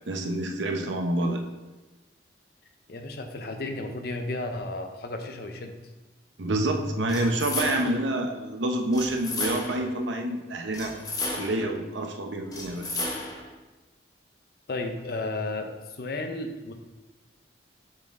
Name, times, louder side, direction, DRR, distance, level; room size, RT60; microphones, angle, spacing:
voice 1, 0.1-1.4 6.4-10.9 11.3-12.9, right 1 dB, 85° right, 3 dB, 0.7 m, -27 dB
voice 2, 2.9-5.7 14.7-16.7, left 2 dB, 55° left, 5 dB, 0.6 m, -33 dB
sound 1, 7.1-8.1 8.9-9.9 10.7-11.7 12.5-13.5, left 2 dB, 20° left, 0.8 m, -33 dB
6.4 x 4.2 x 3.6 m, 1.2 s
head